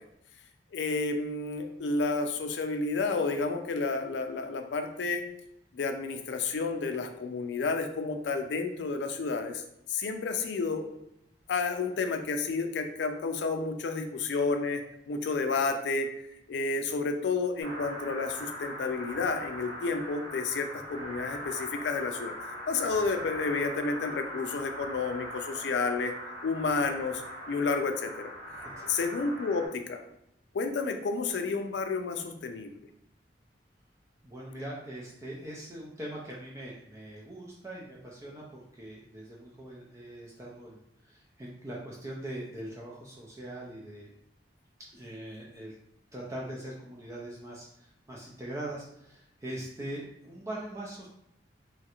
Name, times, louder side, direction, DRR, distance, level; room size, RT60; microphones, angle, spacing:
voice 1, 0.7-5.2 5.7-9.6 9.9-10.8 11.5-14.8 15.1-16.1 16.5-26.1 26.4-27.2 27.5-28.3 28.8-30.0 30.5-32.7, left 4 dB, 70° left, 6 dB, 0.4 m, -31 dB
sound 1, 17.6-29.7, equal, 75° right, 1.1 m, -41 dB
voice 2, 34.2-44.1 44.9-45.7 46.1-51.1, right 1 dB, 15° right, -4 dB, 0.4 m, -41 dB
3.1 x 2.4 x 2.8 m, 0.78 s
head